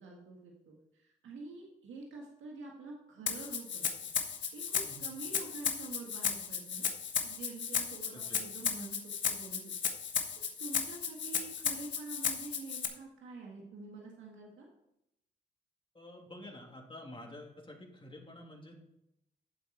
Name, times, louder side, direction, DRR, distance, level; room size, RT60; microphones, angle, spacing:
voice 1, 0.0-3.9 4.5-6.9 7.2-9.7 10.6-14.7, right 3 dB, 85° right, -1 dB, 1.8 m, -47 dB
Rattle (instrument), 3.3-12.9, left 7 dB, 70° left, 1.3 m, -35 dB
voice 2, 15.9-18.9, left 1 dB, 25° left, 0 dB, 3.0 m, -49 dB
11.5 x 7.6 x 4.4 m, 0.83 s
supercardioid pair, 40°, 20 cm